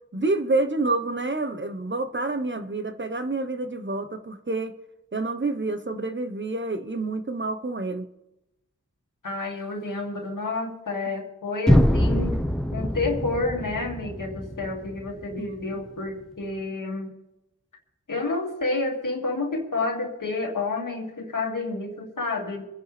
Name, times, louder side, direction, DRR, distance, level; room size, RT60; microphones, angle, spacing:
voice 1, 0.1-4.7 5.1-8.1 15.4-15.8, right 2 dB, 40° right, 8 dB, 1.1 m, -28 dB
voice 2, 9.2-12.4 12.7-17.1 18.1-22.7, left 3 dB, 90° left, 1 dB, 2.4 m, -29 dB
sound 1, 11.7-15.6, equal, ahead, 0.9 m, -24 dB
26.0 x 10.0 x 3.4 m, 0.94 s
wide cardioid pair, 60°, 31 cm